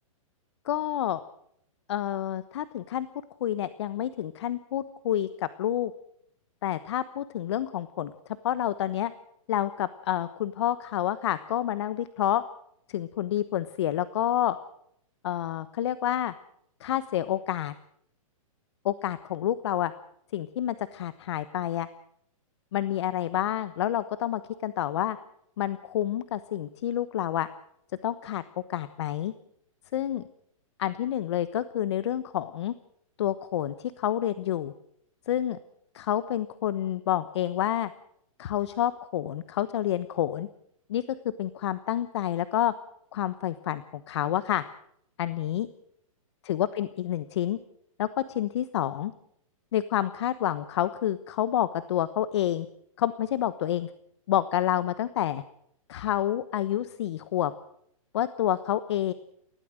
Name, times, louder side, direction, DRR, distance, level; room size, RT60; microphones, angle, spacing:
voice 1, 0.6-1.2 1.9-3.1 3.4-5.9 6.6-8.1 8.4-9.1 9.5-12.4 12.9-14.6 15.2-16.3 16.8-17.7 18.8-19.9 20.3-21.9 22.7-25.2 25.6-27.5 28.0-28.4 28.7-29.3 29.9-30.2 30.8-32.7 33.2-34.7 35.3-35.6 35.9-37.9 38.4-40.5 40.9-41.0 41.4-42.7 43.1-44.6 45.2-45.7 46.4-47.6 48.0-49.1 49.7-52.7 53.0-53.9 54.3-55.4 55.9-57.5 58.1-59.1, left 11 dB, 50° left, 14 dB, 1.1 m, -28 dB
29.0 x 16.0 x 6.4 m, 0.72 s
hypercardioid pair, 160°, 18 cm